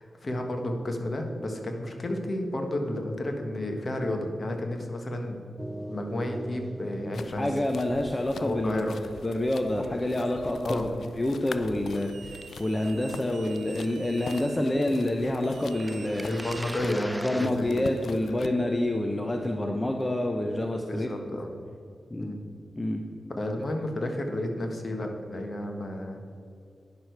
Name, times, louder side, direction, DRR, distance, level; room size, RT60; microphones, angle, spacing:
voice 1, 0.0-5.4 5.9-7.5 8.4-9.0 10.6-10.9 16.2-17.8 20.9-21.5 22.2-22.4 23.3-26.2, left 1 dB, 45° left, 3 dB, 1.5 m, -31 dB
sound 1, 5.6-11.6 11.8-12.7 14.3-14.4 14.6-14.7 15.8-17.5, right 1 dB, 5° right, 0.4 m, -42 dB
sound 2, 7.1-18.5, left 5 dB, 80° left, 0.3 m, -45 dB
voice 2, 7.4-8.8 9.2-16.3 17.2-21.1 22.1-22.3 22.8-23.0, left 1 dB, 25° left, 3 dB, 0.7 m, -28 dB
sound 3, 11.9-14.6 15.4-17.2, right 7 dB, 90° right, 0.4 m, -48 dB
10.0 x 6.5 x 4.7 m, 2.4 s
cardioid pair, 55°, 0 cm